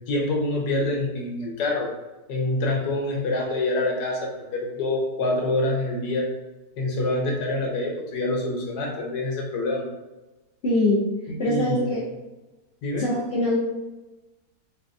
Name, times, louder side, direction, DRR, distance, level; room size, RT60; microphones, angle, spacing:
voice 1, 0.1-1.9 2.3-6.3 6.8-9.9 11.5-11.9 12.8-13.1, left 2 dB, 80° left, 0 dB, 1.4 m, -26 dB
voice 2, 10.6-11.0 11.4-12.0 13.0-13.6, left 1 dB, 45° left, -10 dB, 1.0 m, -22 dB
4.2 x 2.3 x 2.6 m, 1.1 s
omnidirectional pair, 1.8 m